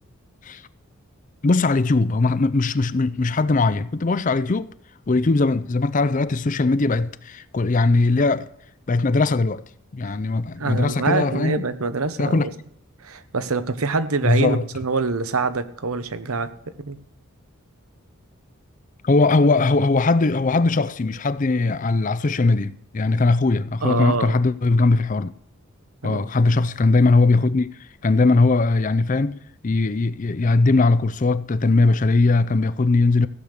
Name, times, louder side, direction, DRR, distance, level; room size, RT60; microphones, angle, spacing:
voice 1, 1.4-4.7 5.1-8.5 8.9-9.6 9.9-11.6 12.2-12.5 14.2-14.7 19.0-25.3 26.0-27.7 28.0-29.4 29.6-33.3, left 3 dB, 35° left, 0.5 m, -20 dB
voice 2, 10.6-12.5 13.0-16.5 16.8-17.0 23.8-24.4 26.0-26.2, right 4 dB, 80° right, 1.0 m, -25 dB
15.5 x 8.5 x 6.5 m
head